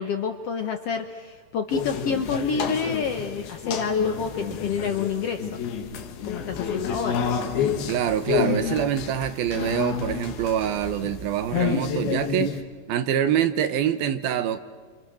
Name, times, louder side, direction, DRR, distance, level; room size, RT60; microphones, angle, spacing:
voice 1, 0.0-5.6 6.2-7.3, left 6 dB, 70° left, 6 dB, 1.5 m, -28 dB
sound 1, 1.7-12.6, left 7 dB, 85° left, 3.6 m, -29 dB
voice 2, 7.9-12.6 12.9-14.6, right 10 dB, 80° right, 10 dB, 3.1 m, -25 dB
28.5 x 27.5 x 6.5 m, 1.5 s
omnidirectional pair, 4.2 m